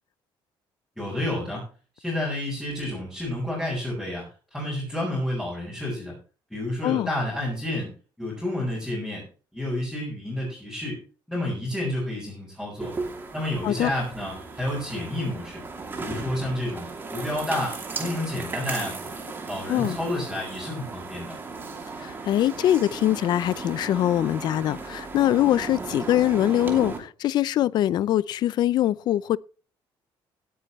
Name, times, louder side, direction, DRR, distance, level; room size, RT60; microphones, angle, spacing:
voice 1, 1.0-1.7 2.0-4.3 4.5-6.1 6.5-7.9 8.2-9.3 9.5-11.0 11.3-12.9 13.3-15.6 16.0-19.1 19.5-21.3, left 1 dB, 5° left, 6.5 m, -30 dB
sound 1, 12.8-27.0, right 4 dB, 25° right, 2.8 m, -36 dB
voice 2, 22.0-29.4, left 12 dB, 50° left, 0.5 m, -23 dB
17.5 x 10.0 x 3.2 m
cardioid pair, 180°, 9 cm